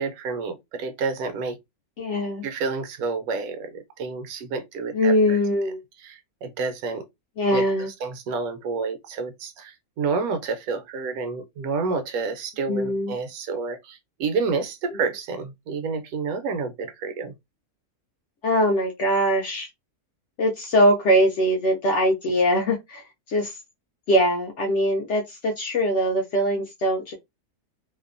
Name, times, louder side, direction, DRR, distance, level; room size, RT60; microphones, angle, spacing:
voice 1, 0.0-1.6 2.4-5.4 6.0-7.0 7.5-7.6 8.0-17.3, right 4 dB, 75° right, 1.0 m, -29 dB
voice 2, 2.0-2.4 4.9-5.8 7.4-7.9 12.7-13.1 14.9-15.0 18.4-19.7 20.4-23.5 24.1-27.1, equal, 65° left, 0.7 m, -22 dB
2.7 x 2.1 x 2.4 m
omnidirectional pair, 1.6 m